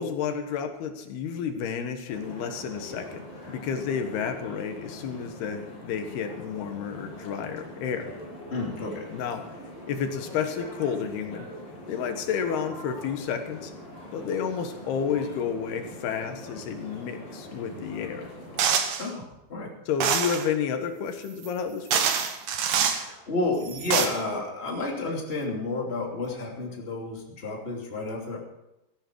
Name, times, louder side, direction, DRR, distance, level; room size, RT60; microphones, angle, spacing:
voice 1, 0.0-8.1 9.1-9.5 9.9-11.5 11.9-13.7 14.1-18.3 19.9-22.2, left 7 dB, 85° left, 6 dB, 3.4 m, -31 dB
sound 1, 2.1-18.7, equal, 60° left, 7.6 m, -43 dB
voice 2, 8.5-9.1 19.0-19.7 22.8-28.4, left 2 dB, 20° left, -1 dB, 2.7 m, -31 dB
sound 2, 18.6-19.1 20.0-20.5 21.4-21.5 21.9-23.0 23.7-24.1, right 7 dB, 70° right, 2.7 m, -25 dB
17.5 x 14.5 x 4.7 m, 0.91 s
omnidirectional pair, 4.5 m